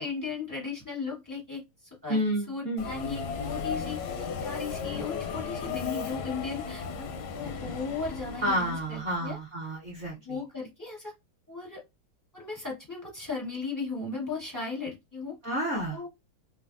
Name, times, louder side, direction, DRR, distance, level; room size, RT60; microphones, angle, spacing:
voice 1, 0.0-1.6 2.0-2.2 2.5-7.1 7.3-9.4 10.2-11.1 11.5-11.8 12.3-15.4 15.9-16.1, left 4 dB, 20° left, -4 dB, 0.5 m, -36 dB
voice 2, 2.1-2.9 8.4-10.1 15.4-16.0, equal, 55° right, -3 dB, 0.7 m, -30 dB
Subway metro underground, 2.8-9.0, left 5 dB, 75° left, 1.0 m, -35 dB
3.3 x 2.1 x 2.5 m, 0.21 s
omnidirectional pair, 2.3 m